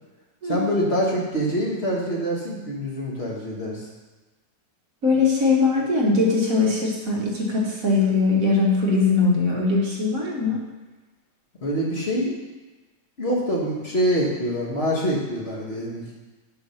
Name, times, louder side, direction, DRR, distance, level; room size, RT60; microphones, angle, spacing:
voice 1, 0.4-3.8 11.6-12.4 13.2-16.1, equal, 35° left, -3 dB, 1.8 m, -25 dB
voice 2, 5.0-10.6, left 3 dB, 55° right, -3 dB, 1.8 m, -21 dB
7.0 x 5.5 x 5.7 m, 1.2 s
omnidirectional pair, 1.9 m